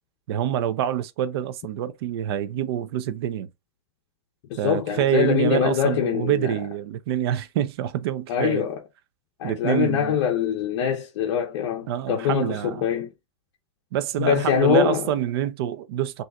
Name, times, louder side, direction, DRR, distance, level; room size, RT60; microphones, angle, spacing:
voice 1, 0.3-3.5 4.6-8.6 9.4-10.2 11.9-12.9 13.9-16.2, right 11 dB, 60° right, 0.6 m, -26 dB
voice 2, 4.5-6.6 8.3-8.8 9.4-13.1 14.2-15.0, left 9 dB, 55° left, 0.7 m, -23 dB
6.4 x 2.7 x 2.3 m
hypercardioid pair, 135°, 15 cm